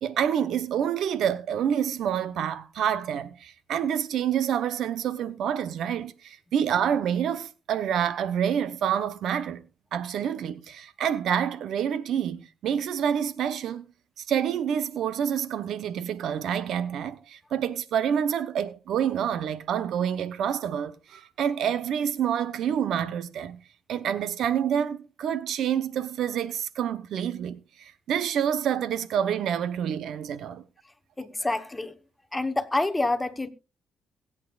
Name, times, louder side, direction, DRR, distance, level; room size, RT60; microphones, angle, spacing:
voice 1, 0.0-9.6 9.9-13.8 14.2-23.6 23.9-30.6, right 9 dB, 75° right, 0.8 m, -28 dB
voice 2, 31.2-32.0 32.3-33.5, left 2 dB, 15° left, 1.1 m, -27 dB
21.5 x 8.5 x 2.4 m
cardioid pair, 90°, 0 cm